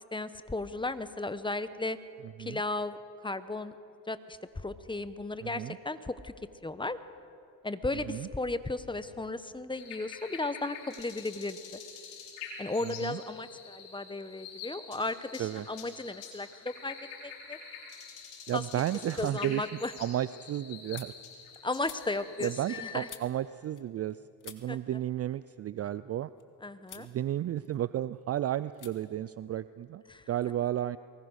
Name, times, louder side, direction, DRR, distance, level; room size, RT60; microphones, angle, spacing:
voice 1, 0.1-2.0 2.4-3.0 3.2-3.7 4.1-6.3 6.6-7.0 7.6-11.8 12.6-17.0 17.2-17.6 18.5-18.6 19.2-19.9 21.6-23.1 24.7-24.8 26.6-27.1 30.1-30.2, left 2 dB, 10° left, 12 dB, 1.1 m, -35 dB
voice 2, 5.4-5.8 8.1-8.3 12.8-13.2 15.4-15.7 18.5-21.1 22.4-24.2 24.4-26.3 26.9-30.0 30.3-31.0, right 12 dB, 35° right, 15 dB, 0.5 m, -33 dB
sound 1, 9.7-23.1, left 6 dB, 90° left, 5.7 m, -46 dB
sound 2, 18.2-18.7 19.1-24.1 24.4-26.4 26.8-27.1 27.5-28.2 28.7-28.9 29.2-30.3, left 8 dB, 40° left, 2.3 m, -53 dB
23.5 x 20.5 x 6.5 m, 2.6 s
supercardioid pair, 80°, 46 cm